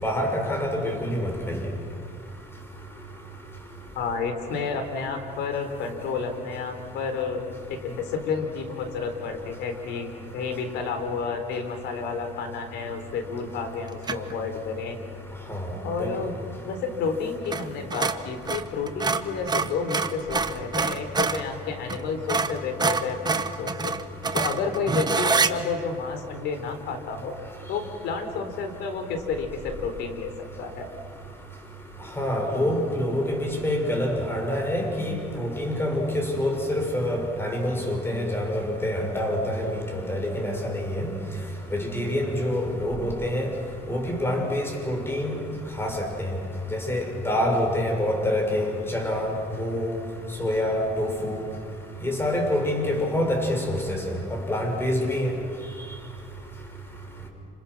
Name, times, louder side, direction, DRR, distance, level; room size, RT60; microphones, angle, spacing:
voice 1, 0.0-1.6 15.5-15.6 16.0-16.1 32.2-41.1 41.7-43.5 43.9-45.4 45.8-46.3 46.7-49.3 49.6-49.9 50.4-51.4 52.0-55.3, left 1 dB, 15° left, 2 dB, 6.2 m, -26 dB
voice 2, 4.0-7.4 7.7-15.0 15.8-16.3 16.6-24.0 24.3-27.4 27.7-30.3 30.6-30.9, left 5 dB, 85° left, 6 dB, 3.9 m, -30 dB
sound 1, 14.0-14.4 17.5-17.7 17.9-21.5 21.9-22.0 22.3-25.5, right 4 dB, 25° right, 1.2 m, -26 dB
29.5 x 27.5 x 6.2 m, 2.6 s
cardioid pair, 110°, 17 cm